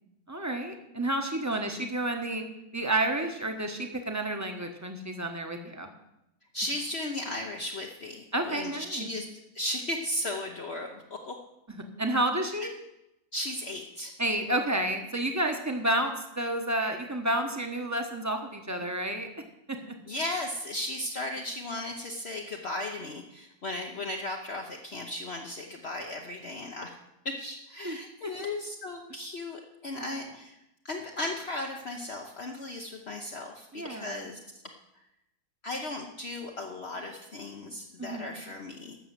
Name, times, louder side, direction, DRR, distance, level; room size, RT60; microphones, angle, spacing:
voice 1, 0.3-2.4 2.7-5.9 8.3-9.1 11.7-12.7 14.2-19.3 19.7-19.9 27.8-28.0 28.2-28.3 30.0-30.2 33.7-34.3 38.0-38.3, right 1 dB, 10° right, 4 dB, 1.0 m, -30 dB
voice 2, 6.5-9.2 9.5-11.4 13.3-14.2 20.1-26.9 27.2-30.6 30.8-34.4 35.6-39.0, left 1 dB, 45° left, 1 dB, 1.1 m, -36 dB
12.0 x 6.6 x 7.5 m, 0.89 s
omnidirectional pair, 1.7 m